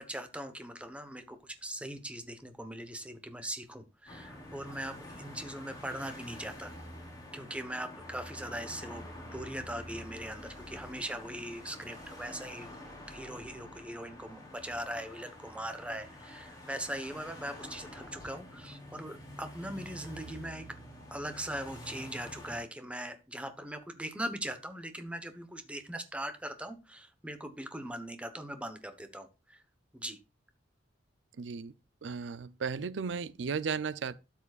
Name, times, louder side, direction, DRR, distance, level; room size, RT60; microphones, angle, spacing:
voice 1, 0.0-6.7 7.3-12.7 13.1-20.7 21.1-29.6 29.9-30.2, right 1 dB, 5° right, 1.0 m, -40 dB
sound 1, 4.1-22.6, left 1 dB, 20° left, 3.9 m, -48 dB
voice 2, 31.4-31.7 32.0-34.1, right 5 dB, 70° right, 0.5 m, -35 dB
12.0 x 7.3 x 2.4 m
head